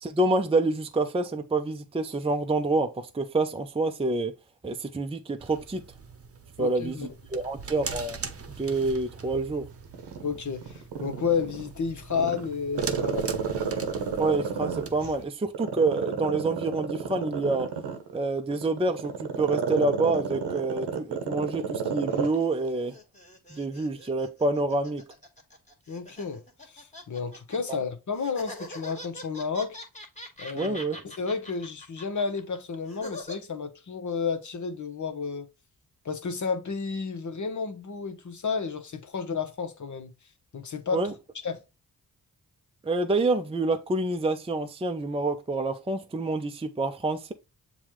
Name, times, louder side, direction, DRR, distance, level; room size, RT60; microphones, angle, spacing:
voice 1, 0.0-4.4 4.6-5.8 6.6-7.0 7.3-8.2 8.6-9.7 14.2-17.7 18.1-19.1 19.4-22.9 23.5-25.0 27.7-27.8 30.5-31.0 40.9-41.1 42.8-47.3, right 2 dB, 15° right, 0.6 m, -27 dB
sound 1, 5.4-15.3, right 4 dB, 35° right, 0.9 m, -42 dB
voice 2, 6.6-7.1 10.2-13.5 25.9-26.4 26.7-29.8 30.4-30.8 31.0-35.5 36.0-40.1 40.5-41.0 41.4-41.6, left 5 dB, 45° left, 1.0 m, -31 dB
Growling, 9.9-11.7 12.1-15.1 15.5-22.4 22.7-22.8, right 7 dB, 90° right, 1.0 m, -30 dB
sound 2, 22.4-27.8 28.2-33.4, left 1 dB, 15° left, 1.7 m, -44 dB
7.1 x 2.4 x 3.1 m
supercardioid pair, 50°, 39 cm